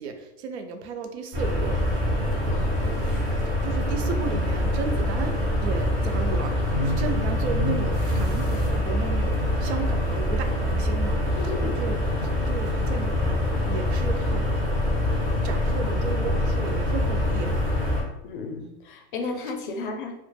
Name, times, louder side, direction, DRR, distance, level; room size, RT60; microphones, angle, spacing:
voice 1, 0.0-1.8 3.4-14.5 15.1-17.7, right 5 dB, 80° right, 6 dB, 0.5 m, -34 dB
sound 1, 1.3-18.0, left 1 dB, 25° right, 0.4 m, -25 dB
voice 2, 2.5-3.1 11.3-11.8 18.2-20.1, left 3 dB, 50° left, 4 dB, 0.4 m, -34 dB
2.1 x 2.0 x 3.1 m, 0.87 s
supercardioid pair, 165°, 32 cm